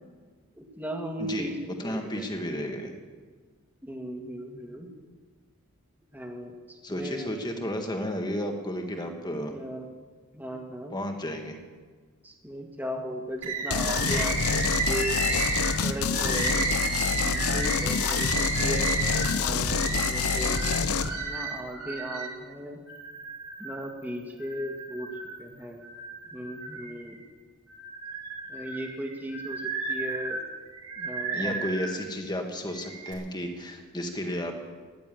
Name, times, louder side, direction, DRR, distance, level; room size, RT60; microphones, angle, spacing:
voice 1, 0.6-1.5 1.8-2.3 3.8-4.9 6.1-6.5 6.9-7.3 9.5-9.8 10.3-10.9 12.2-15.4 15.8-18.9 19.4-20.7 21.2-22.8 23.6-25.1 25.4-25.8 26.3-27.2 28.5-29.6 29.9-30.4 31.0-31.6, right 1 dB, 10° right, 1 dB, 1.9 m, -37 dB
voice 2, 1.2-1.5 1.8-2.9 6.8-9.5 10.9-11.6 31.3-34.5, equal, 20° left, 4 dB, 1.7 m, -32 dB
sound 1, 13.4-13.5 13.8-14.4 15.1-15.2 16.1-16.6 17.9-18.4 18.9-19.0 19.3-19.4, right 1 dB, 70° right, 2.8 m, -41 dB
Bird, 13.4-22.3 22.9-23.9 24.4-25.4 25.8-27.2 27.7-32.0 32.7-33.1, right 3 dB, 90° right, 4.6 m, -33 dB
sound 2, 13.7-21.1, left 5 dB, 80° left, 0.8 m, -27 dB
14.0 x 10.5 x 9.2 m, 1.5 s
head